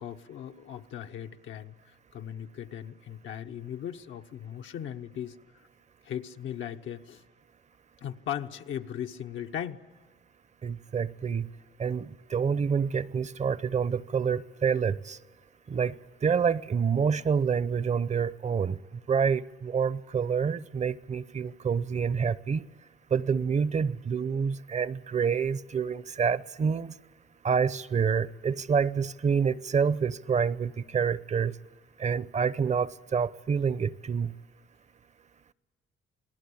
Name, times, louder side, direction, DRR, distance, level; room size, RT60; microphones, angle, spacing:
voice 1, 0.0-1.7 2.1-5.4 6.0-7.2 8.0-9.8, left 9 dB, 80° left, 1.0 m, -38 dB
voice 2, 10.6-11.5 11.8-15.2 15.7-18.8 19.1-22.6 23.1-26.9 27.4-31.5 32.0-34.3, right 6 dB, 35° right, 0.7 m, -27 dB
27.0 x 18.5 x 8.5 m
cardioid pair, 90°, 20 cm